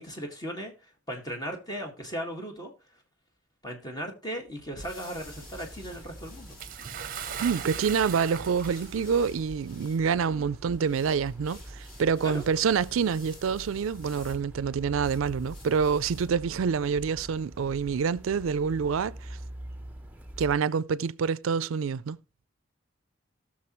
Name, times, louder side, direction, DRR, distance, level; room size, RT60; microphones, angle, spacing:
voice 1, 0.0-2.7 3.6-6.6 12.2-12.4, equal, 20° left, 1.8 m, -37 dB
sound 1, 4.5-16.4, left 1 dB, 45° left, 3.4 m, -51 dB
sound 2, 5.2-20.6, right 1 dB, 10° right, 0.8 m, -45 dB
Bathtub (filling or washing) / Splash splatter, 6.6-9.2 10.1-10.2 11.2-11.3, right 8 dB, 45° right, 0.7 m, -38 dB
voice 2, 7.4-19.4 20.4-22.2, right 6 dB, 80° right, 0.4 m, -27 dB
18.5 x 6.5 x 3.0 m
head